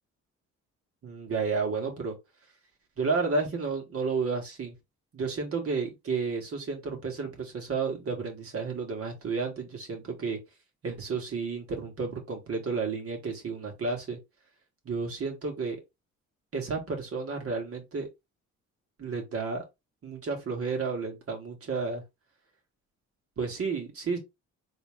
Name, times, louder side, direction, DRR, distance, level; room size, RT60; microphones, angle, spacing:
voice 1, 1.0-2.1 3.0-4.7 5.1-10.4 10.8-14.2 14.9-15.8 16.5-18.1 19.0-19.6 20.0-22.0 23.4-24.2, right 4 dB, 50° right, 2.0 m, -31 dB
3.9 x 3.2 x 3.7 m
cardioid pair, 90°, 30 cm